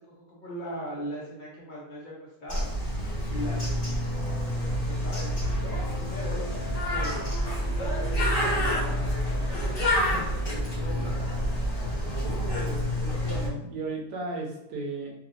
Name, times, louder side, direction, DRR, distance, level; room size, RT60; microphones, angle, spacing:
voice 1, 0.0-2.7 3.3-5.3 5.6-7.2 7.7-10.6, equal, 45° left, -5 dB, 0.6 m, -40 dB
Bird, 2.5-13.5, equal, 25° left, 1.6 m, -28 dB
voice 2, 12.0-15.1, right 3 dB, 85° right, 0 dB, 1.3 m, -36 dB
3.1 x 2.8 x 2.5 m, 0.84 s
omnidirectional pair, 1.8 m